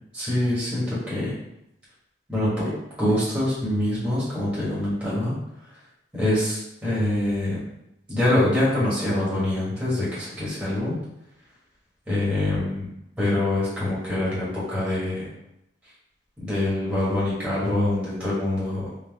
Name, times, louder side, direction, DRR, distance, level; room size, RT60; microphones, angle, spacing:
voice 1, 0.1-1.4 2.3-5.3 6.1-7.6 8.1-10.9 12.1-12.9 13.2-15.3 16.4-18.9, left 1 dB, 5° right, -9 dB, 1.4 m, -25 dB
3.7 x 2.8 x 3.4 m, 0.85 s
head